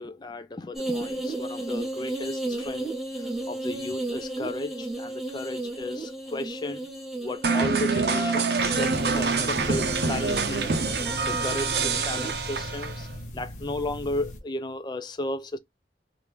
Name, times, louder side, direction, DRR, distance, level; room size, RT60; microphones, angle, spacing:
voice 1, 0.0-2.9 3.2-6.9 7.2-10.7 11.2-13.1 13.3-15.6, left 2 dB, 25° left, 0.4 m, -34 dB
sound 1, 0.7-12.3, right 2 dB, ahead, 0.8 m, -34 dB
sound 2, 7.4-13.1, right 4 dB, 60° right, 0.7 m, -26 dB
sound 3, 8.6-14.4, equal, 45° left, 0.7 m, -39 dB
2.9 x 2.5 x 3.4 m
head